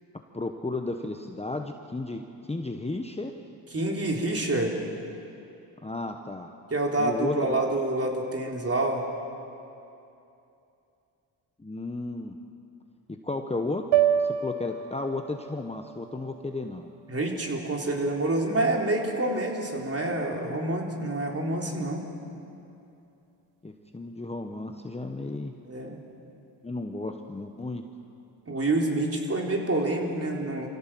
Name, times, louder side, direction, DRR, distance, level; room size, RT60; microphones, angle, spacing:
voice 1, 0.3-3.3 5.8-6.5 7.0-7.7 11.6-12.4 13.1-13.9 14.2-16.9 23.6-25.5 26.6-27.8, left 2 dB, 15° left, 4 dB, 1.2 m, -33 dB
voice 2, 3.7-4.7 6.7-9.0 17.1-22.0 25.7-26.0 28.5-30.7, right 2 dB, 30° right, 0 dB, 3.9 m, -27 dB
sound 1, 13.9-18.2, right 9 dB, 65° right, 0.8 m, -29 dB
25.5 x 16.0 x 7.7 m, 2.7 s
cardioid pair, 70°, 45 cm